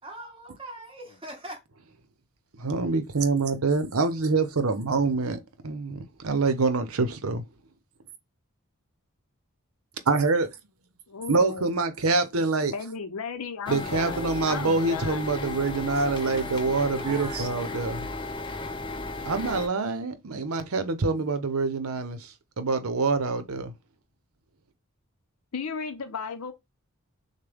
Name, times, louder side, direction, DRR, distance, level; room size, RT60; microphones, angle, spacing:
voice 1, 0.0-1.6 16.1-16.5 16.8-17.7, right 1 dB, 25° right, 1.8 m, -42 dB
voice 2, 2.6-7.4 10.1-10.6 11.3-12.7 13.7-18.1 19.2-23.7, right 3 dB, 80° right, 0.8 m, -26 dB
voice 3, 11.1-11.7 12.6-15.2 25.5-26.5, left 5 dB, 90° left, 0.7 m, -35 dB
sound 1, 13.7-19.7, left 3 dB, 20° left, 0.6 m, -35 dB
6.6 x 2.2 x 3.5 m
head